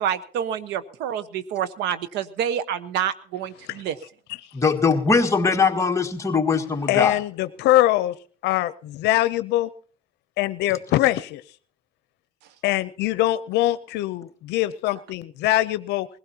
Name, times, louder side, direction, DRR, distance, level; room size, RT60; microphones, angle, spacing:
voice 1, 0.0-4.0, right 9 dB, 85° right, 14 dB, 1.1 m, -28 dB
voice 2, 4.5-7.2, left 5 dB, 15° left, 2 dB, 1.7 m, -21 dB
voice 3, 6.9-8.1 8.4-9.7 10.4-11.4 12.6-16.1, left 15 dB, 85° left, 14 dB, 0.7 m, -22 dB
21.5 x 16.0 x 2.9 m, 0.42 s
cardioid pair, 110°, 17 cm